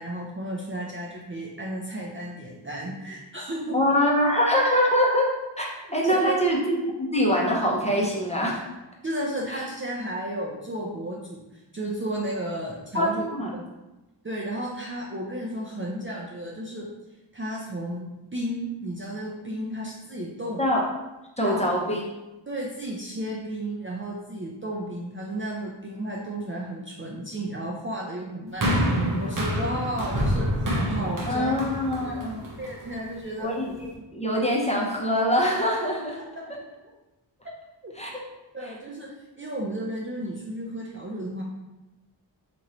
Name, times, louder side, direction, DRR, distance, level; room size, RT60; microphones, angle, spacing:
voice 1, 0.0-3.8 6.0-6.4 9.0-13.2 14.2-16.9 17.3-20.6 21.4-21.6 22.5-31.5 32.0-32.2 32.6-33.5 36.4-36.5 37.8-37.9 38.5-41.4, right 1 dB, 30° right, -3 dB, 0.5 m, -33 dB
voice 2, 3.7-5.3 5.6-8.6 9.5-9.6 12.9-13.5 20.6-20.8 21.4-22.1 31.3-32.5 33.4-33.7 34.1-36.2 38.0-38.2, equal, 15° left, -3 dB, 0.7 m, -24 dB
sound 1, 28.6-33.0 33.7-33.8, equal, 45° right, 0.9 m, -27 dB
3.0 x 2.5 x 4.2 m, 1.0 s
wide cardioid pair, 80°, 46 cm